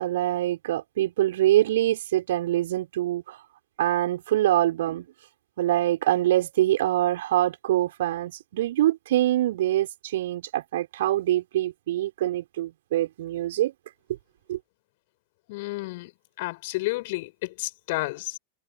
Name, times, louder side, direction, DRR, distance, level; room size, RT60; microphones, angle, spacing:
voice 1, 0.0-3.4 3.8-5.1 5.6-13.7 14.5-14.6, right 14 dB, 55° right, 6.2 m, -24 dB
voice 2, 15.5-16.1 16.4-18.4, left 22 dB, 50° left, 6.1 m, -31 dB
figure-of-eight pair, 90°, 0 cm